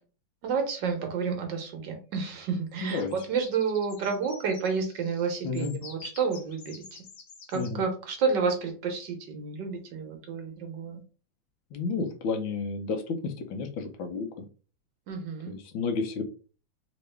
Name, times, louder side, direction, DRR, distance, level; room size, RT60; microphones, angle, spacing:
voice 1, 0.4-6.8 7.5-11.0 15.1-15.5, right 5 dB, 65° right, 3 dB, 1.4 m, -30 dB
sound 1, 2.7-7.7, left 5 dB, 55° left, 1.5 m, -49 dB
voice 2, 2.8-3.1 5.4-5.7 7.5-7.8 11.7-14.4 15.5-16.2, left 4 dB, 75° left, 5 dB, 1.4 m, -31 dB
3.5 x 3.0 x 3.2 m, 0.37 s
omnidirectional pair, 2.2 m